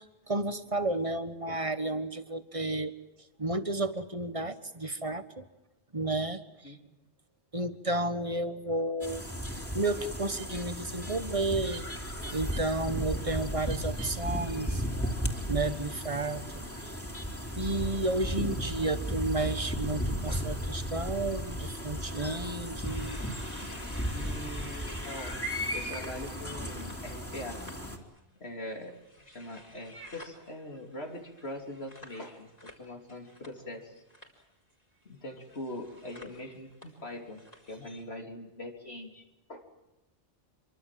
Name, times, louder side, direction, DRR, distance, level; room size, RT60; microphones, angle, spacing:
voice 1, 0.0-2.9 3.4-5.5 5.9-6.8 7.5-9.2 9.7-14.8 15.5-17.0 17.6-23.2, right 2 dB, 30° right, 11 dB, 1.5 m, -32 dB
sound 1, 9.0-28.0, equal, 10° left, 3.5 m, -35 dB
sound 2, 22.8-27.8 28.1-33.8 34.1-34.4 35.3-38.0, left 1 dB, 35° left, 4.8 m, -51 dB
voice 2, 24.1-25.4 25.7-27.6 28.4-28.9 29.3-34.0 35.1-37.4 37.7-39.2 39.5-39.7, left 1 dB, 70° left, 2 dB, 3.6 m, -42 dB
26.5 x 24.0 x 7.6 m, 0.99 s
omnidirectional pair, 1.1 m